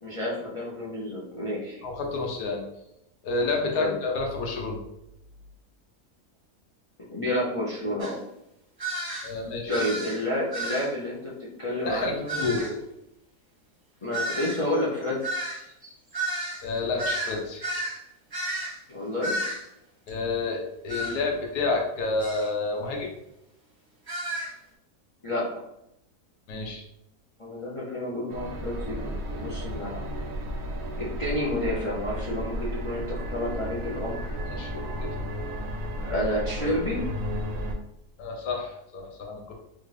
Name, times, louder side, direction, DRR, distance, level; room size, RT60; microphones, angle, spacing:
voice 1, 0.0-1.8 3.8-3.9 7.1-8.2 9.7-11.3 11.6-12.7 14.0-15.4 18.9-19.3 25.2-25.6 27.4-30.0 31.0-34.3 36.1-37.0, left 1 dB, 55° left, -6 dB, 0.3 m, -30 dB
voice 2, 1.8-2.6 3.2-4.8 9.2-9.8 11.8-12.7 16.6-17.6 20.1-23.1 26.5-26.8 34.5-35.1 38.2-39.6, left 3 dB, 80° left, 0 dB, 1.3 m, -29 dB
sound 1, 8.0-8.1 8.8-9.3 9.7-10.2 10.5-10.9 12.3-12.7 14.1-18.0 18.3-18.8 19.2-19.6 20.9-21.2 22.2-22.5 24.1-24.5, right 1 dB, 20° right, 0.7 m, -32 dB
sound 2, 28.3-37.8, equal, 70° right, 0.9 m, -33 dB
3.4 x 2.5 x 3.2 m, 0.83 s
omnidirectional pair, 1.7 m